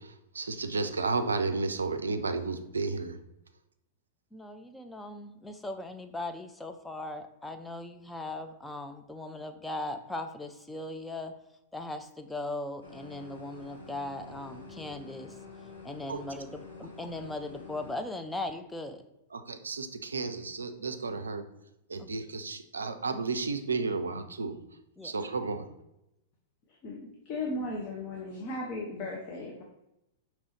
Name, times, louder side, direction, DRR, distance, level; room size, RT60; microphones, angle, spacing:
voice 1, 0.0-3.2 16.1-16.2 19.3-21.5 21.9-24.6 25.0-25.7, right 4 dB, 75° right, 9 dB, 0.4 m, -32 dB
voice 2, 4.3-11.4 11.7-15.4 15.8-19.0 25.0-25.1, left 2 dB, 5° left, 6 dB, 0.4 m, -39 dB
sound 1, 12.8-18.0, left 3 dB, 65° left, 1.3 m, -48 dB
voice 3, 26.7-29.6, left 2 dB, 35° left, -1 dB, 0.7 m, -36 dB
5.3 x 3.0 x 3.1 m, 0.87 s
figure-of-eight pair, 95°, 0 cm